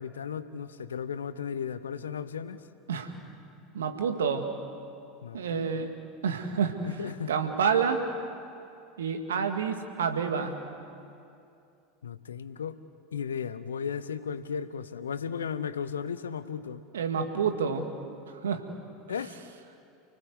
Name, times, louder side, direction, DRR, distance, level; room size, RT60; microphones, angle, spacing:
voice 1, 0.0-2.6 5.2-5.7 6.8-7.3 12.0-12.8 13.1-16.8 19.1-19.3, left 7 dB, 75° left, 14 dB, 0.9 m, -35 dB
voice 2, 3.7-4.4 5.3-5.9 6.2-6.9 7.3-8.0 9.0-10.5 16.9-17.9 18.3-18.6, right 6 dB, 70° right, 6 dB, 2.1 m, -28 dB
29.5 x 19.0 x 8.2 m, 2.6 s
figure-of-eight pair, 80°, 0 cm